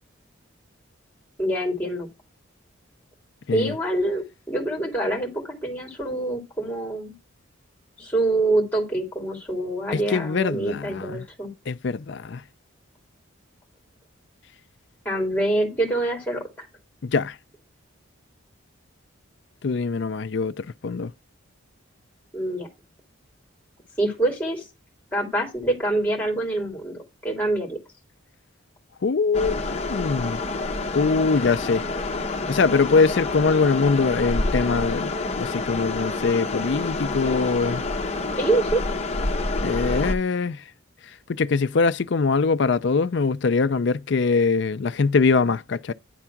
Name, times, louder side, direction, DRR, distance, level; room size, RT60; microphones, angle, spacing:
voice 1, 1.4-2.1 3.5-7.1 8.0-11.5 15.0-16.4 22.3-22.7 24.0-24.6 25.1-27.8 38.4-38.8, right 2 dB, 10° left, 2.4 m, -25 dB
voice 2, 9.9-11.3 11.7-12.4 17.0-17.4 19.6-21.1 29.0-29.6 29.9-30.4 30.9-31.8 32.5-37.8 39.6-40.6 41.3-45.9, left 4 dB, 55° left, 0.4 m, -23 dB
sound 1, 29.3-40.1, left 3 dB, 30° left, 0.9 m, -28 dB
10.0 x 3.6 x 5.8 m
head